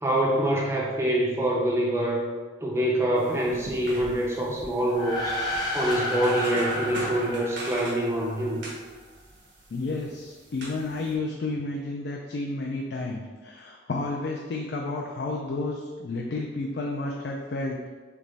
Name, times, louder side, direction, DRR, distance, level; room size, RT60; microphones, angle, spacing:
voice 1, 0.0-2.2 2.6-5.4 5.7-8.6, right 1 dB, 15° right, -3 dB, 0.5 m, -25 dB
sound 1, 3.2-11.1, right 1 dB, 80° right, 1.0 m, -41 dB
sound 2, 4.8-8.5, left 1 dB, 20° left, 0.7 m, -31 dB
voice 2, 9.7-17.9, left 2 dB, 60° left, 0 dB, 0.4 m, -31 dB
3.4 x 3.0 x 4.0 m, 1.4 s
head